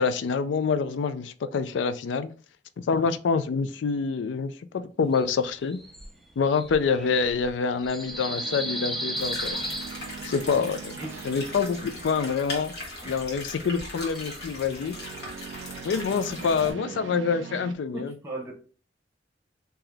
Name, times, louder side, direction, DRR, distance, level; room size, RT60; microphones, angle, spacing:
voice 1, 0.0-2.3 2.8-5.8 6.4-9.6 10.2-11.0 11.2-12.7 13.0-15.0 15.8-18.1, left 5 dB, 85° left, 0.4 m, -26 dB
sound 1, 5.1-6.1 6.5-10.6 13.8-15.1, equal, ahead, 0.4 m, -36 dB
sound 2, 5.8-6.2 7.8-12.9 14.7-17.7, right 7 dB, 80° right, 0.3 m, -42 dB
sound 3, 9.2-16.7, left 2 dB, 60° left, 1.3 m, -39 dB
voice 2, 11.0-11.3 13.0-13.2 16.2-17.0 17.9-18.5, right 1 dB, 15° right, 0.9 m, -39 dB
3.8 x 2.8 x 3.3 m
head